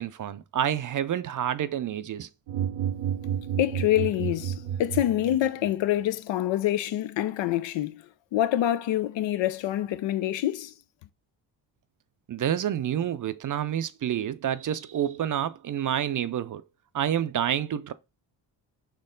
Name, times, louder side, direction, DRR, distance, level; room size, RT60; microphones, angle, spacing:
voice 1, 0.0-2.3 12.3-16.6 16.9-17.9, right 10 dB, 40° right, 0.5 m, -28 dB
sound 1, 2.5-5.7, right 9 dB, 90° right, 0.7 m, -31 dB
voice 2, 3.6-8.0 8.3-10.7, left 12 dB, 65° left, 0.6 m, -26 dB
4.4 x 3.0 x 3.7 m
supercardioid pair, 55°, 48 cm